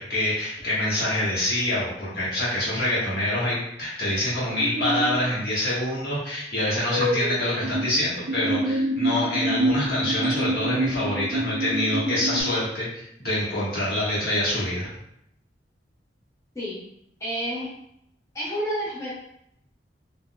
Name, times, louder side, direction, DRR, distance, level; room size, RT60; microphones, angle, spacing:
voice 1, 0.0-14.9, left 1 dB, 60° left, -8 dB, 1.4 m, -26 dB
sound 1, 4.6-5.1 6.9-7.9 8.3-12.4, right 1 dB, 65° right, 0.4 m, -26 dB
voice 2, 17.2-17.7 18.3-19.1, equal, 15° left, -8 dB, 0.7 m, -29 dB
3.9 x 2.4 x 2.2 m, 0.76 s
head